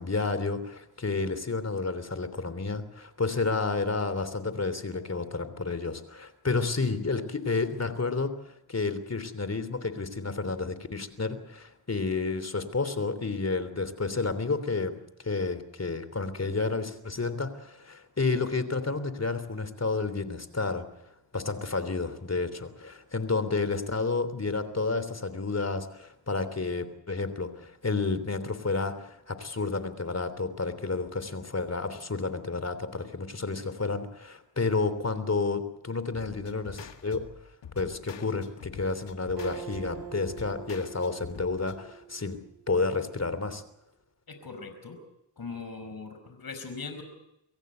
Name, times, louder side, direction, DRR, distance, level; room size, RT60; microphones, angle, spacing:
voice 1, 0.0-20.9 21.3-37.2 37.7-42.4 42.7-43.6, left 3 dB, 35° left, 12 dB, 3.3 m, -30 dB
sound 1, 36.1-41.8, left 7 dB, 75° left, 2.0 m, -46 dB
Acoustic guitar, 39.4-43.0, right 8 dB, 60° right, 4.7 m, -44 dB
voice 2, 44.3-45.0 45.4-47.0, left 4 dB, 55° left, 7 dB, 5.2 m, -40 dB
24.5 x 16.0 x 8.1 m, 0.84 s
cardioid pair, 50°, 43 cm